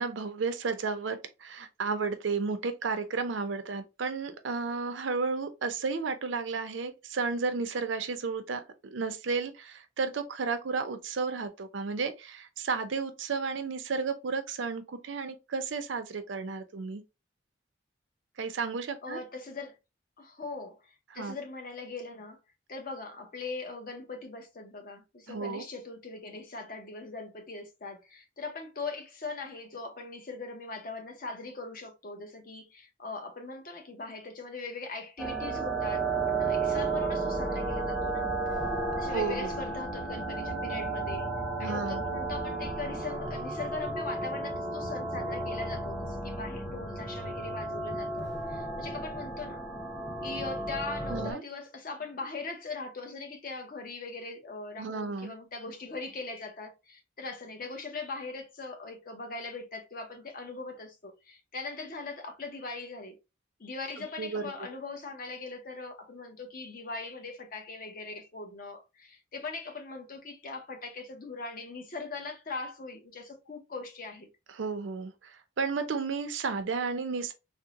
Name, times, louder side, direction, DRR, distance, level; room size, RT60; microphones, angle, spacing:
voice 1, 0.0-17.0 18.4-19.2 21.1-21.4 25.3-25.6 39.1-39.6 41.6-42.0 51.1-51.4 54.8-55.3 64.0-64.4 74.5-77.3, right 4 dB, 75° right, 0.5 m, -33 dB
voice 2, 19.0-19.8 20.2-22.4 22.7-38.3 39.0-41.3 41.6-49.6 50.2-63.2 63.6-74.3, left 3 dB, 45° left, 0.7 m, -40 dB
sound 1, 35.2-51.3, right 3 dB, 5° left, 0.7 m, -33 dB
3.5 x 2.0 x 2.8 m
head